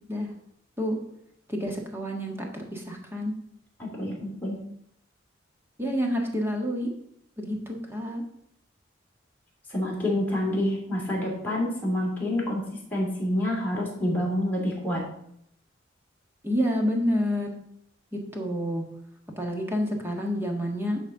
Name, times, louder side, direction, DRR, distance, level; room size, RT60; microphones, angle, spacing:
voice 1, 1.5-3.3 5.8-6.9 7.4-8.2 16.4-17.5 18.1-18.8 19.4-21.0, equal, 10° right, 1 dB, 1.5 m, -28 dB
voice 2, 3.8-4.6 9.7-12.7 12.9-15.0, left 1 dB, 10° left, -4 dB, 2.9 m, -27 dB
10.5 x 4.3 x 6.4 m, 0.73 s
head